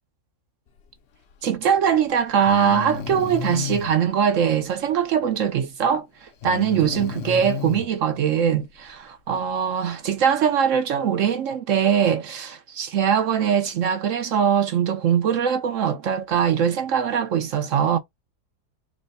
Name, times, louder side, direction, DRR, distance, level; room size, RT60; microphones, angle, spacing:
voice 1, 1.4-18.0, right 8 dB, 65° right, 0.8 m, -22 dB
Breathing, 1.6-1.7 2.4-3.9 6.4-7.9, left 6 dB, 60° left, 0.7 m, -31 dB
3.2 x 3.1 x 4.0 m
omnidirectional pair, 1.8 m